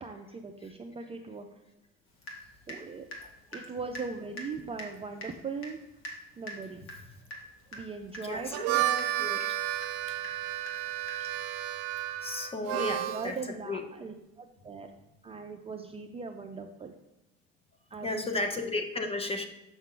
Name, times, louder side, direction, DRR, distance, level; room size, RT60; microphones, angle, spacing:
voice 1, 0.0-1.6 2.7-3.1 3.5-5.8 6.4-6.8 7.7-9.3 12.6-14.9 15.2-16.9 17.9-18.5, right 4 dB, 20° right, 4 dB, 0.4 m, -40 dB
Water tap faucet / Drip, 2.2-2.8 3.1-11.5, equal, 45° left, 1.6 m, -45 dB
voice 2, 8.2-8.8 9.2-9.4 10.1-10.2 11.5-11.6 11.9-13.4 13.6-13.8 18.0-19.5, left 2 dB, 20° left, 6 dB, 0.8 m, -34 dB
Harmonica, 8.4-13.3, right 14 dB, 75° right, 0.5 m, -32 dB
7.0 x 5.7 x 3.8 m, 0.97 s
cardioid pair, 120°, 29 cm